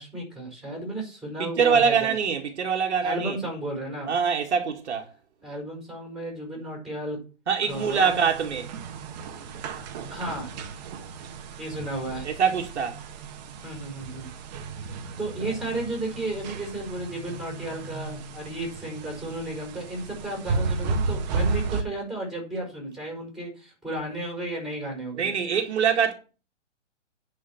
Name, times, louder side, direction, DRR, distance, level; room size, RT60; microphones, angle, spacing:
voice 1, 0.0-2.1 3.0-4.1 5.4-7.2 7.7-8.2 10.1-10.5 11.6-12.3 13.6-14.3 14.7-25.3, right 1 dB, ahead, 4.6 m, -33 dB
voice 2, 1.4-3.4 4.0-5.1 7.5-8.8 12.2-13.0 25.2-26.1, right 6 dB, 65° right, 2.0 m, -24 dB
sound 1, 7.7-21.8, right 4 dB, 35° right, 1.4 m, -34 dB
10.0 x 4.9 x 7.1 m
hypercardioid pair, 135°, 36 cm